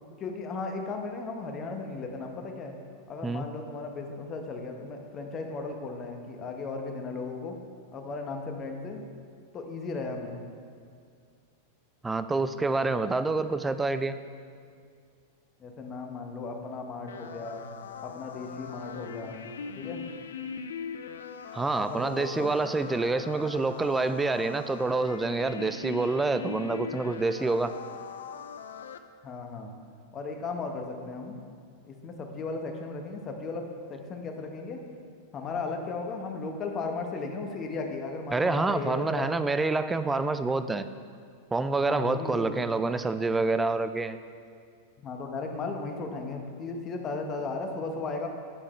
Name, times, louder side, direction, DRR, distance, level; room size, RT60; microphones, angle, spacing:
voice 1, 0.2-2.7 3.1-7.6 7.9-9.0 9.5-10.4 15.6-17.7 18.0-19.4 19.8-20.0 21.7-22.5 25.4-25.6 27.3-27.4 29.2-29.7 30.1-31.3 31.9-34.8 35.3-39.3 41.9-42.6 45.0-48.3, left 3 dB, 30° left, 3 dB, 0.9 m, -36 dB
voice 2, 12.0-14.2 21.5-27.7 38.3-40.8 41.5-44.2, right 3 dB, 10° right, 11 dB, 0.3 m, -27 dB
sound 1, 17.1-29.0, left 6 dB, 80° left, 0.3 m, -41 dB
8.9 x 4.7 x 4.3 m, 2.2 s
hypercardioid pair, 105°, 0 cm